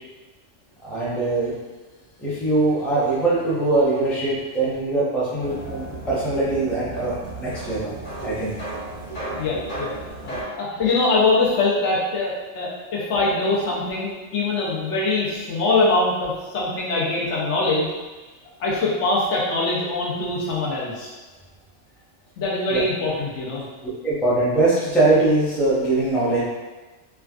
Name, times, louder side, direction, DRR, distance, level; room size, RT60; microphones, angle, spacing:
voice 1, 0.8-1.5 2.2-7.9 8.2-8.5 9.1-9.2 22.7-22.8 24.0-26.5, right 2 dB, ahead, -9 dB, 0.5 m, -22 dB
sound 1, 5.4-10.4, right 1 dB, 40° left, 1.3 m, -34 dB
voice 2, 9.4-9.9 10.2-17.9 18.6-21.1 22.4-23.6, left 3 dB, 70° left, -5 dB, 0.9 m, -23 dB
3.3 x 2.3 x 2.3 m, 1.2 s
omnidirectional pair, 1.3 m